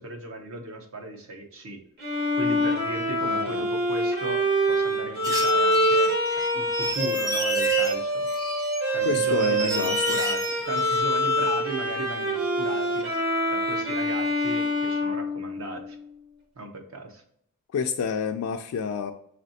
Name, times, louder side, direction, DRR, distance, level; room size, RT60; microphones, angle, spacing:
voice 1, 0.0-1.8 2.4-6.1 6.5-8.3 8.9-13.1 13.5-16.0 16.6-17.2, right 2 dB, 65° right, 0.7 m, -36 dB
Bowed string instrument, 2.0-15.9, equal, 45° right, 1.1 m, -25 dB
voice 2, 3.2-3.7 9.0-10.0 17.7-19.1, left 6 dB, 80° left, 0.3 m, -29 dB
sound 1, 5.2-7.9 8.3-11.0, right 2 dB, 15° right, 0.5 m, -33 dB
4.1 x 3.1 x 2.7 m
head